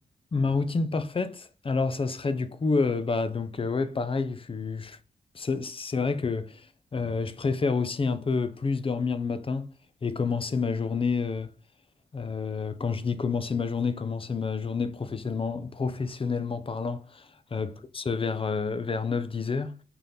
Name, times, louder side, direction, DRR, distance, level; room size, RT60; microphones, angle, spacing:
voice 1, 0.3-5.0 5.3-6.7 6.9-9.7 10.0-11.5 12.1-19.8, left 4 dB, 30° left, 0.5 m, -29 dB
3.8 x 2.8 x 3.4 m
cardioid pair, 75°, 17 cm